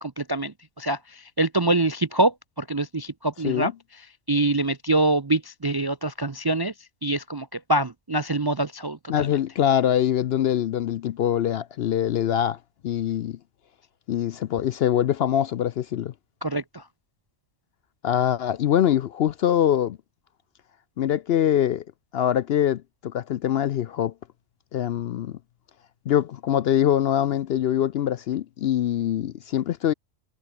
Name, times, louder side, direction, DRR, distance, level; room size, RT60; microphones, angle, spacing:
voice 1, 0.0-3.7 4.3-6.7 7.0-9.3 16.4-16.8, right 2 dB, 35° right, 0.4 m, -25 dB
voice 2, 9.1-13.4 14.1-16.1 18.0-20.0 21.0-21.8 22.1-24.1 24.7-25.4 26.1-29.9, left 10 dB, 65° left, 0.7 m, -23 dB
omnidirectional pair, 1.3 m